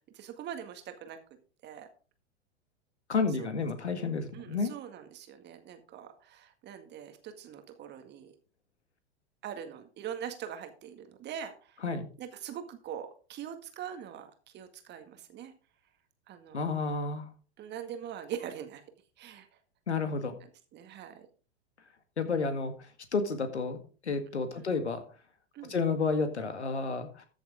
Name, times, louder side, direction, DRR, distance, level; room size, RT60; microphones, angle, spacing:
voice 1, 0.1-1.2 1.6-1.9 3.4-3.5 4.3-8.3 9.4-11.8 12.2-15.5 16.3-16.6 17.6-18.8 19.2-19.5 20.7-21.3 24.6-24.7 25.5-25.8, right 9 dB, 30° right, 7 dB, 1.9 m, -42 dB
voice 2, 3.1-4.7 11.8-12.1 16.5-17.3 19.9-20.3 22.2-22.7 23.1-25.0 25.7-27.3, left 4 dB, 85° left, 8 dB, 1.9 m, -31 dB
14.0 x 7.0 x 3.7 m, 0.38 s
figure-of-eight pair, 100°, 33 cm